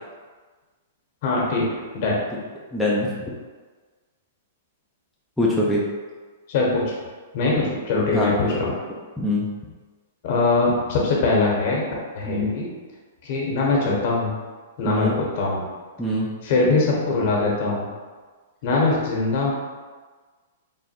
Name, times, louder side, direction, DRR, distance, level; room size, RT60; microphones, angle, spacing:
voice 1, 1.2-1.7 1.9-2.2 6.5-6.9 7.3-8.8 10.2-11.8 12.1-12.7 13.2-14.4 14.8-15.7 16.4-17.8 18.6-19.5, left 3 dB, 55° left, -3 dB, 1.2 m, -22 dB
voice 2, 2.7-3.3 5.4-5.8 8.1-8.3 9.2-9.5 12.3-12.5 14.8-15.1 16.0-16.3, left 1 dB, ahead, -6 dB, 0.6 m, -23 dB
3.8 x 2.1 x 4.3 m, 1.4 s
hypercardioid pair, 135°, 0 cm